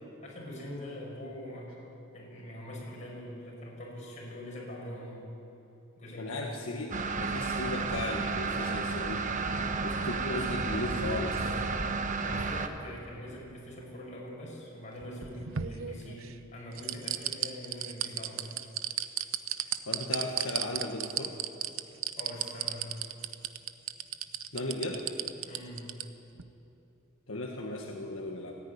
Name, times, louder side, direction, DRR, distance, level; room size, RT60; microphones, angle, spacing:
voice 1, 0.2-1.7 2.1-5.3 6.0-6.6 12.0-18.6 22.2-23.1 25.5-26.0, equal, 35° left, -3 dB, 6.7 m, -43 dB
voice 2, 6.1-9.2 9.8-11.6 19.8-21.3 24.5-25.0 27.3-28.6, left 2 dB, 80° left, 0 dB, 1.7 m, -36 dB
sound 1, 6.9-12.7, right 4 dB, 40° right, 1.1 m, -32 dB
sound 2, 15.0-16.3 16.8-26.0 26.4-26.5, right 11 dB, 80° right, 0.8 m, -33 dB
28.5 x 10.0 x 9.9 m, 2.9 s
head